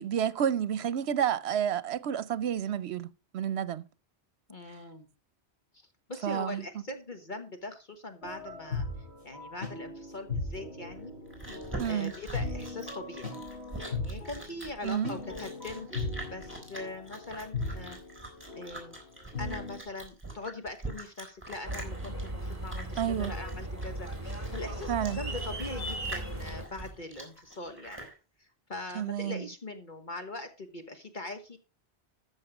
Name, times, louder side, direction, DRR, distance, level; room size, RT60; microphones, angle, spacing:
voice 1, 0.0-3.8 6.2-6.6 11.8-12.1 14.8-15.2 23.0-23.3 24.9-25.2 29.0-29.4, right 9 dB, 80° right, 0.9 m, -30 dB
voice 2, 4.5-5.1 5.7-11.1 11.8-13.3 13.8-18.0 18.6-19.0 19.4-28.1 28.4-31.6, left 2 dB, 50° left, 1.4 m, -42 dB
sound 1, 8.2-19.8, left 3 dB, 80° left, 4.3 m, -38 dB
Chewing mastication, 10.9-28.1, right 2 dB, 10° right, 4.1 m, -44 dB
sound 2, 21.6-26.7, right 1 dB, 35° right, 2.5 m, -37 dB
14.0 x 6.3 x 4.9 m
omnidirectional pair, 1.1 m